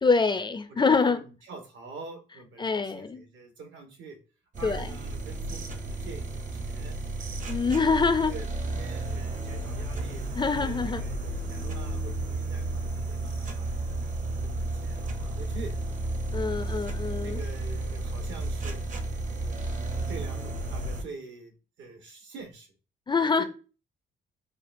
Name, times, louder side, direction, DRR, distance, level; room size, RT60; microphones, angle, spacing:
voice 1, 0.0-1.2 2.6-3.2 4.6-4.9 7.5-8.3 10.4-11.0 16.3-17.4 23.1-23.4, left 4 dB, 25° left, 10 dB, 0.4 m, -25 dB
voice 2, 0.7-4.2 4.6-7.0 7.5-13.7 14.0-14.1 14.4-15.7 16.5-16.8 17.2-18.8 19.4-19.6 20.1-22.7 23.2-23.4, right 4 dB, 70° right, 4 dB, 1.2 m, -45 dB
sound 1, 4.5-21.0, right 2 dB, 40° right, 0.8 m, -32 dB
6.5 x 2.4 x 2.6 m, 0.35 s
cardioid pair, 90°, 20 cm